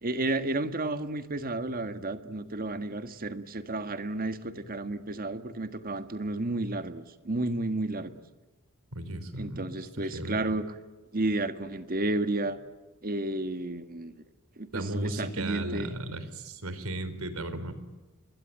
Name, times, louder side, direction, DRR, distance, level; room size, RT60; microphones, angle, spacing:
voice 1, 0.0-8.1 9.4-10.7 11.1-12.6 13.0-14.1 14.6-15.9, right 2 dB, 45° right, 10 dB, 1.7 m, -32 dB
voice 2, 8.9-10.4 14.7-17.7, right 1 dB, 80° right, 12 dB, 4.0 m, -35 dB
29.5 x 22.0 x 9.2 m, 1.2 s
head